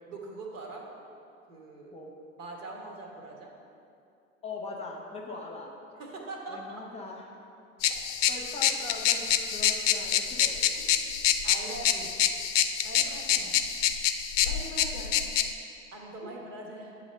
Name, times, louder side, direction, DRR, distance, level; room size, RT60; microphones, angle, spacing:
voice 1, 0.1-0.9 1.5-1.9 2.4-3.5 6.0-6.8 10.9-12.1 12.8-13.6 14.4-15.2 15.9-17.0, right 2 dB, 70° right, 0 dB, 1.4 m, -42 dB
voice 2, 4.4-5.7 6.5-7.3 8.3-11.0 16.2-16.3, left 3 dB, 15° left, -1 dB, 0.8 m, -41 dB
sound 1, 7.8-15.5, left 9 dB, 60° left, 0.5 m, -27 dB
8.2 x 3.1 x 6.3 m, 2.6 s
figure-of-eight pair, 85°, 40 cm